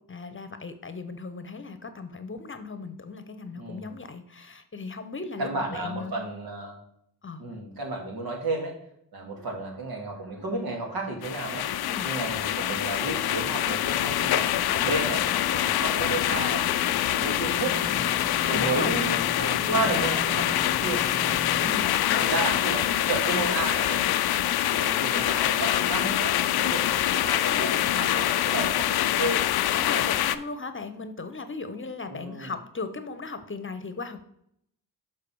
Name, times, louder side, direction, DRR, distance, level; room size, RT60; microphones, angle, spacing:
voice 1, 0.1-6.2 7.2-7.4 11.8-12.1 17.4-18.9 19.4-20.0 21.6-23.1 27.4-27.9 28.1-28.3 29.7-34.2, left 4 dB, 30° left, 10 dB, 0.9 m, -37 dB
voice 2, 3.6-3.9 5.4-6.8 7.4-8.8 9.1-11.7 12.0-16.7 17.1-17.9 18.5-21.0 21.6-21.7 22.1-24.1 24.7-29.5 32.1-32.5, right 2 dB, 70° right, 1 dB, 2.3 m, -32 dB
sound 1, 9.4-21.7, equal, 5° left, 0.6 m, -42 dB
sound 2, 11.2-30.4, left 12 dB, 75° left, 0.5 m, -25 dB
6.6 x 4.2 x 5.4 m, 0.72 s
cardioid pair, 50°, 38 cm